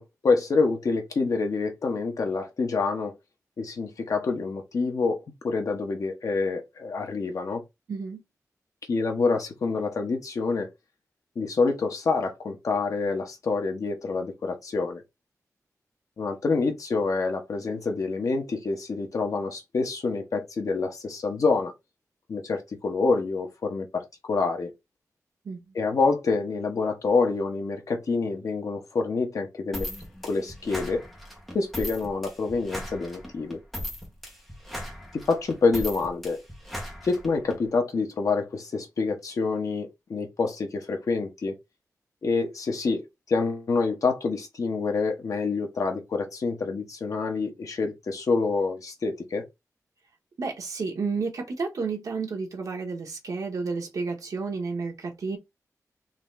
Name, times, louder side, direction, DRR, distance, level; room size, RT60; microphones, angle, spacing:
voice 1, 0.0-3.1 3.6-7.6 8.9-10.7 11.3-15.0 16.2-21.7 22.3-24.7 25.7-29.9 30.2-31.0 31.5-33.6 35.1-36.4 37.0-41.6 42.2-49.4, left 4 dB, 65° left, 1.0 m, -27 dB
voice 2, 7.9-8.2 25.4-25.7 50.4-55.4, right 4 dB, 70° right, 1.1 m, -31 dB
sound 1, 29.7-37.6, equal, 5° left, 1.2 m, -38 dB
3.9 x 2.9 x 3.3 m
wide cardioid pair, 165°, 6 cm